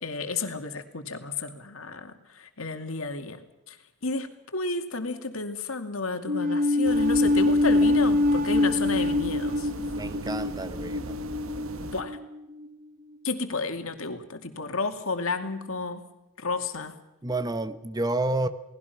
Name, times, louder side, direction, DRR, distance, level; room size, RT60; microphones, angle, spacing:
voice 1, 0.0-3.8 4.0-9.7 11.9-12.2 13.2-16.0 16.4-17.0, left 3 dB, 80° left, 6 dB, 2.4 m, -32 dB
sound 1, 6.3-12.7, left 2 dB, 40° right, 1.1 m, -24 dB
sound 2, 6.8-12.0, right 2 dB, 75° right, 1.3 m, -39 dB
voice 2, 9.9-11.2 17.2-18.5, right 2 dB, 20° right, 11 dB, 1.0 m, -29 dB
29.0 x 19.0 x 6.0 m, 0.99 s
head